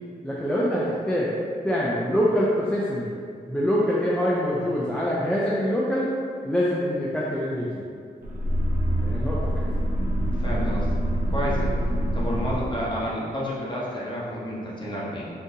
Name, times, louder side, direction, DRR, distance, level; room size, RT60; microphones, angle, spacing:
voice 1, 0.2-1.3 1.6-3.1 3.5-6.1 6.4-7.8 9.0-9.5, equal, 5° left, -6 dB, 0.4 m, -24 dB
sound 1, 8.2-13.1, equal, 65° right, 0.4 m, -25 dB
voice 2, 10.4-10.9 11.3-11.7 12.1-15.3, equal, 30° left, -6 dB, 0.9 m, -30 dB
3.7 x 2.6 x 2.7 m, 2.2 s
wide cardioid pair, 95°, 16 cm